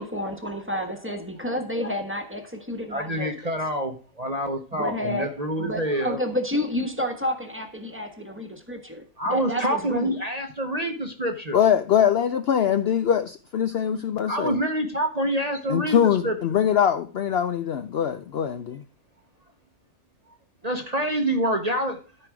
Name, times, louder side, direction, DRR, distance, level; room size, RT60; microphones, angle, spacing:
voice 1, 0.0-3.3 4.7-10.2, left 1 dB, 10° right, 1.2 m, -30 dB
voice 2, 2.9-6.2 9.2-11.6 14.3-16.4 20.6-22.0, right 1 dB, 35° right, 0.9 m, -27 dB
voice 3, 11.5-14.6 15.7-18.8, left 9 dB, 60° left, 0.6 m, -22 dB
13.0 x 5.1 x 4.7 m
omnidirectional pair, 1.5 m